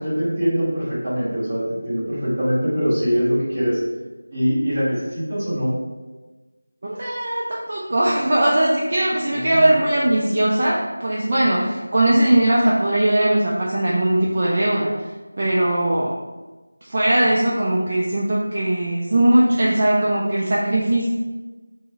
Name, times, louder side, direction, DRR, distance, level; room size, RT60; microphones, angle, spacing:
voice 1, 0.0-3.8 4.3-5.7 9.3-9.7, equal, 15° right, -15 dB, 1.1 m, -23 dB
voice 2, 6.8-14.9 15.4-16.1 16.8-21.1, right 1 dB, 35° right, -5 dB, 0.3 m, -19 dB
3.0 x 2.0 x 3.3 m, 1.2 s
figure-of-eight pair, 175°, 0 cm